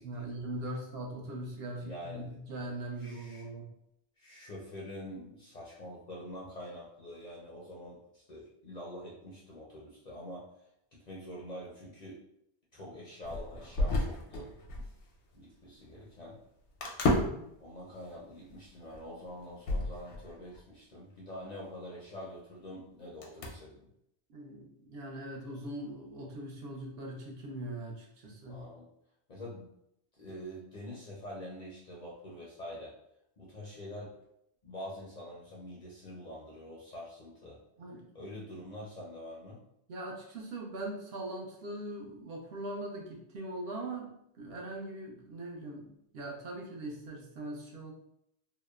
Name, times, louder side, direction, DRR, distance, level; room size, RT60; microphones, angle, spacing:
voice 1, 0.0-3.7 17.2-17.5 24.3-28.7 37.8-38.3 39.9-47.9, right 1 dB, 65° right, -1 dB, 0.8 m, -41 dB
voice 2, 1.8-2.3 3.0-3.4 4.2-10.5 10.9-12.2 12.7-14.5 15.3-16.4 17.6-23.9 28.5-28.9 29.3-29.7 30.2-32.9 33.4-34.1 34.6-37.6 38.1-39.6, left 1 dB, 50° left, -5 dB, 0.5 m, -45 dB
sound 1, 13.2-15.0 15.3-15.4 16.8-17.5 18.1-18.2 18.5-20.6 21.5-21.6 23.2-23.5, left 1 dB, 80° left, 0.9 m, -32 dB
2.9 x 2.0 x 2.3 m, 0.76 s
omnidirectional pair, 1.2 m